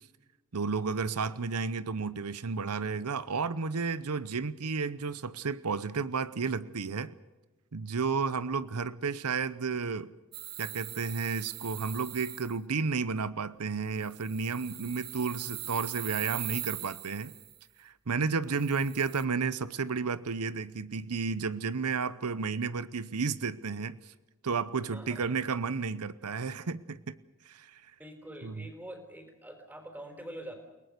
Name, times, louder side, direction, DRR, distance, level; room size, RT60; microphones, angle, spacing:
voice 1, 0.5-7.1 7.7-10.1 10.6-17.3 17.8-24.1 24.4-27.2 27.4-27.9 28.4-28.7, right 5 dB, 90° right, 16 dB, 0.8 m, -32 dB
sound 1, 10.3-12.5 14.0-17.5 18.6-19.2, right 15 dB, 45° right, 0.8 m, -41 dB
voice 2, 24.9-25.4 28.0-30.6, right 1 dB, 10° right, 5 dB, 4.3 m, -45 dB
30.0 x 19.0 x 6.7 m, 1.1 s
head